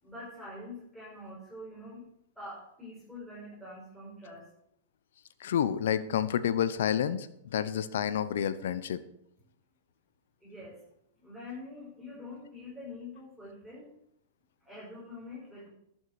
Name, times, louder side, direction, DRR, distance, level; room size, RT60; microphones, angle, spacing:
voice 1, 0.0-2.0 2.4-4.5 10.4-10.8 11.2-13.9 14.6-15.7, left 2 dB, ahead, -7 dB, 5.9 m, -45 dB
voice 2, 5.4-7.3 7.5-9.0, left 9 dB, 75° left, 13 dB, 0.9 m, -29 dB
12.5 x 7.5 x 6.8 m, 0.75 s
hypercardioid pair, 125°, 0 cm